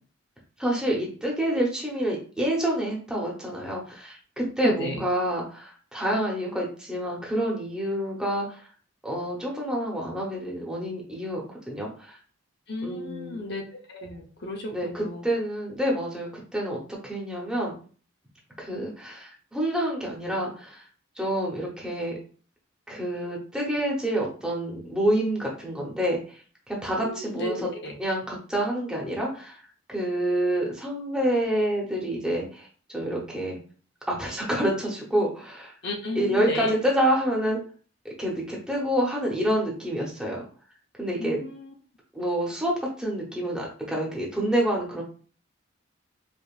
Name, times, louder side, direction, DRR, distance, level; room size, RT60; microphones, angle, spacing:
voice 1, 0.6-8.6 9.0-12.2 12.8-13.5 14.7-17.7 18.6-20.8 21.2-22.1 22.9-26.4 26.7-27.7 28.0-29.6 29.9-32.7 32.9-33.6 34.1-35.7 36.1-37.6 38.2-40.4 41.0-41.4 42.1-45.0, right 1 dB, 5° right, -3 dB, 0.8 m, -28 dB
voice 2, 4.6-5.0 12.7-15.2 27.0-28.0 35.8-36.7 41.2-41.7, left 1 dB, 50° left, 1 dB, 0.6 m, -33 dB
5.1 x 2.5 x 2.4 m, 0.41 s
head